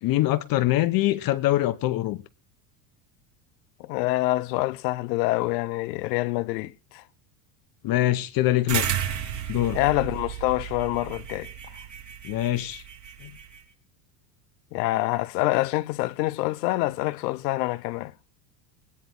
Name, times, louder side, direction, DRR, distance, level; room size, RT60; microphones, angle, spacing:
voice 1, 0.0-2.2 7.8-8.9 9.5-9.8 12.2-12.8 13.2-13.3, left 15 dB, 45° left, 1.0 m, -23 dB
voice 2, 3.8-7.0 9.7-11.5 14.7-18.1, left 18 dB, 75° left, 0.9 m, -26 dB
sound 1, 8.7-13.6, right 10 dB, 35° right, 4.3 m, -33 dB
22.5 x 9.5 x 3.8 m
supercardioid pair, 120°, 50 cm